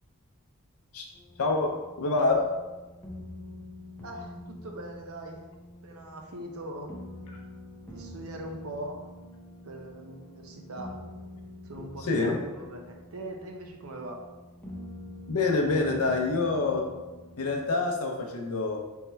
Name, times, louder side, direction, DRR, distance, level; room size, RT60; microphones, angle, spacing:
sound 1, 1.1-17.5, left 1 dB, 10° left, 0.8 m, -46 dB
voice 1, 1.4-1.7 2.0-2.4 12.0-12.4 15.3-16.9 17.4-18.8, left 3 dB, 80° left, 1 dB, 0.6 m, -26 dB
voice 2, 4.0-5.4 5.8-6.9 7.8-9.1 9.6-11.0 11.6-14.3, right 1 dB, 70° right, 2 dB, 0.7 m, -41 dB
3.5 x 3.2 x 4.5 m, 1.2 s
head